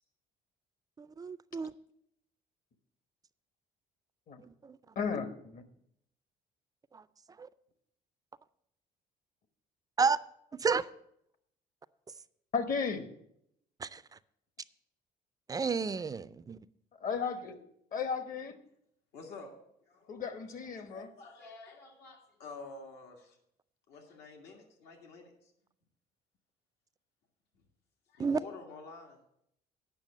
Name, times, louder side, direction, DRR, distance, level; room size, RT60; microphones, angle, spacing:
voice 1, 1.0-1.7 4.6-4.8 6.9-7.0 7.4-7.5 10.0-10.2 10.6-10.9 13.8-14.0 15.5-16.6 28.2-28.4, right 5 dB, 20° right, 0.3 m, -31 dB
voice 2, 4.9-5.6 12.5-13.1 17.0-17.6 17.9-18.5 20.1-21.1, left 5 dB, 55° left, 1.2 m, -34 dB
voice 3, 19.1-19.5 19.8-20.2 20.8-23.4 23.9-25.5 28.1-29.2, left 3 dB, 85° left, 1.9 m, -49 dB
9.0 x 5.9 x 7.4 m
cardioid pair, 110°, 17 cm